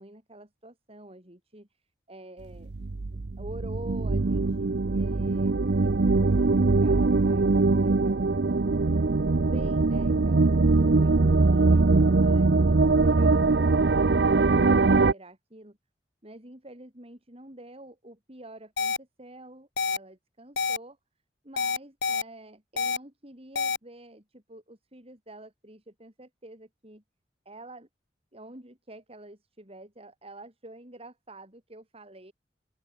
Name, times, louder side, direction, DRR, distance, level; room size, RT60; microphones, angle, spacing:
voice 1, 0.0-2.7 3.1-8.9 9.4-10.4 10.8-14.7 15.1-15.8 16.2-21.0 21.4-27.0 27.5-27.9 28.3-32.3, right 1 dB, 35° right, 5.4 m, -48 dB
sound 1, 2.5-15.1, right 3 dB, 70° right, 0.7 m, -22 dB
sound 2, 18.8-19.0 19.8-20.0 20.6-20.8 21.6-22.2 22.8-23.0 23.6-23.8, left 5 dB, 70° left, 1.6 m, -27 dB
open air
head